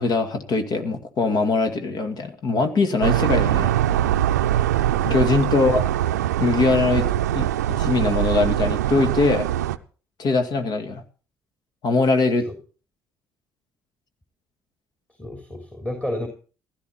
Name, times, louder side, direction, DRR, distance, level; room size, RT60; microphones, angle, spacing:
voice 1, 0.0-3.7 5.0-5.8 6.4-7.0 7.3-7.5 7.8-9.5 10.2-11.0 11.8-12.5, left 3 dB, 50° left, 7 dB, 2.2 m, -21 dB
sound 1, 3.0-9.8, right 12 dB, 80° right, 0.6 m, -22 dB
voice 2, 5.5-5.9 12.5-12.6 15.2-16.3, left 1 dB, 15° left, 3 dB, 3.5 m, -31 dB
15.5 x 13.0 x 4.4 m, 0.38 s
figure-of-eight pair, 50°, 9 cm